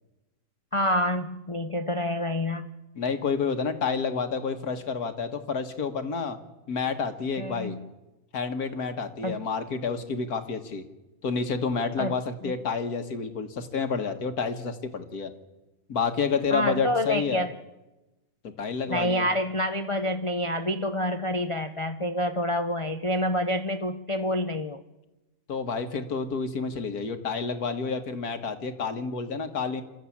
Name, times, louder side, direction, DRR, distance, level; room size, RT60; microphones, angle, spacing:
voice 1, 0.7-2.7 7.4-7.8 9.2-9.4 12.0-12.1 12.4-12.5 16.5-17.5 18.9-24.8, left 1 dB, 30° left, 8 dB, 0.5 m, -27 dB
voice 2, 3.0-6.4 6.7-7.8 8.3-10.8 11.2-15.3 15.9-17.5 18.6-19.3 25.5-29.8, left 5 dB, 70° left, 8 dB, 1.8 m, -29 dB
27.5 x 13.0 x 8.6 m, 1.0 s
omnidirectional pair, 1.7 m